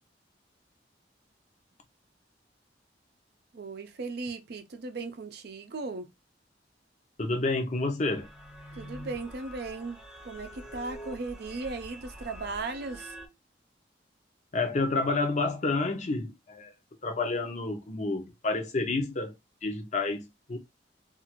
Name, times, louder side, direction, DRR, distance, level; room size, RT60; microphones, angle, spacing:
voice 1, 3.5-6.1 8.8-13.2, right 3 dB, 65° right, 0.5 m, -37 dB
voice 2, 7.2-8.3 14.5-16.7 17.0-19.3 19.6-20.6, left 3 dB, 40° left, 0.7 m, -29 dB
sound 1, 8.1-13.3, equal, 5° right, 0.7 m, -45 dB
2.5 x 2.5 x 2.9 m
head